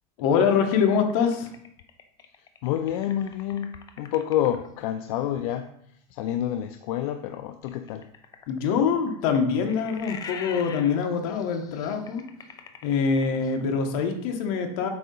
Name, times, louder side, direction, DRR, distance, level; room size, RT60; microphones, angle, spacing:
voice 1, 0.2-1.5 8.5-12.2 12.8-14.9, left 6 dB, 75° left, 4 dB, 1.1 m, -24 dB
sound 1, 0.7-4.8 7.6-13.7, left 6 dB, 20° left, 0.4 m, -43 dB
voice 2, 2.6-8.0, left 11 dB, 90° left, 8 dB, 0.4 m, -28 dB
7.8 x 2.8 x 5.3 m, 0.73 s
cardioid pair, 165°, 18 cm